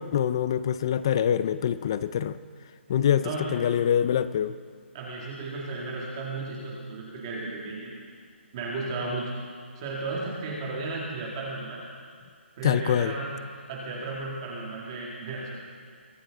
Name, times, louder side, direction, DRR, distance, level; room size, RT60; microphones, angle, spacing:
voice 1, 0.0-2.4 2.9-4.5 12.6-13.1, left 9 dB, 25° left, 15 dB, 0.3 m, -25 dB
voice 2, 4.9-7.9 8.5-9.3 9.8-11.8 12.6-13.3 13.7-15.5, right 3 dB, 25° right, -4 dB, 2.2 m, -34 dB
22.5 x 11.0 x 3.9 m, 2.1 s
hypercardioid pair, 170°, 7 cm